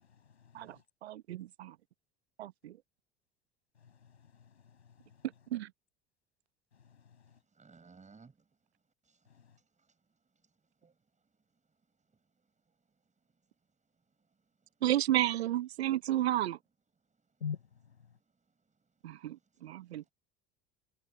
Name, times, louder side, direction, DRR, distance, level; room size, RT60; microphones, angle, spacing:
voice 1, 0.0-0.8 3.7-5.5 6.7-7.4 9.2-9.6 17.4-18.2, left 7 dB, 85° left, 7.7 m, -47 dB
voice 2, 1.0-1.7 2.4-2.7 5.5-5.7 14.8-16.6 19.0-20.1, right 13 dB, 75° right, 1.1 m, -32 dB
voice 3, 7.3-14.8 17.0-17.4 18.1-20.1, right 4 dB, 20° right, 7.6 m, -66 dB
figure-of-eight pair, 65°, 32 cm